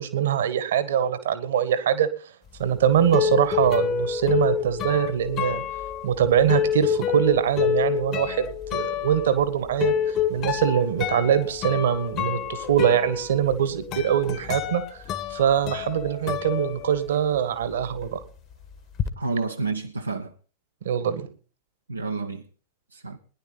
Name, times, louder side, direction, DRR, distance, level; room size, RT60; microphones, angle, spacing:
voice 1, 0.0-2.1 2.6-5.6 6.0-9.9 10.3-15.0 15.3-18.2 20.8-21.3, right 9 dB, 60° right, 1.6 m, -23 dB
sound 1, 2.6-17.4 17.6-19.1, left 9 dB, 35° left, 1.3 m, -28 dB
voice 2, 19.2-20.3 21.9-22.4 22.9-23.2, right 3 dB, 80° right, 0.8 m, -29 dB
20.0 x 10.5 x 4.0 m
figure-of-eight pair, 90°, 0 cm